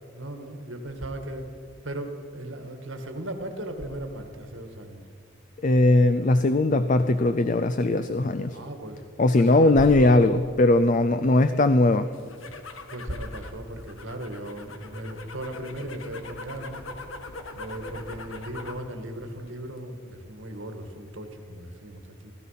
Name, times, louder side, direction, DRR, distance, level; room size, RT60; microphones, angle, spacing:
voice 1, 0.1-1.5 1.8-5.0 8.5-9.0 9.3-10.1 12.9-16.8 17.5-22.3, right 1 dB, 75° right, 5 dB, 1.8 m, -37 dB
voice 2, 5.6-8.6 9.2-12.1, left 2 dB, 40° left, 11 dB, 0.4 m, -20 dB
sound 1, 12.1-18.9 19.2-19.8, left 2 dB, 80° left, 1.4 m, -41 dB
16.5 x 15.0 x 5.7 m, 2.2 s
head